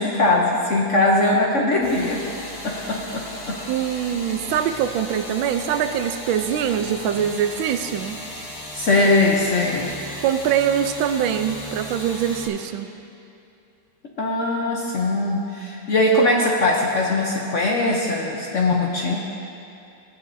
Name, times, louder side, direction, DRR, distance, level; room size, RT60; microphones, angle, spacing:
voice 1, 0.0-2.2 2.6-3.6 8.7-9.9 14.2-19.2, left 2 dB, 55° left, -1 dB, 0.8 m, -21 dB
sound 1, 1.8-12.5, equal, 15° left, 1.0 m, -36 dB
voice 2, 3.7-8.2 10.2-12.9, right 9 dB, 90° right, 8 dB, 1.4 m, -23 dB
16.0 x 9.0 x 2.7 m, 2.7 s
omnidirectional pair, 2.1 m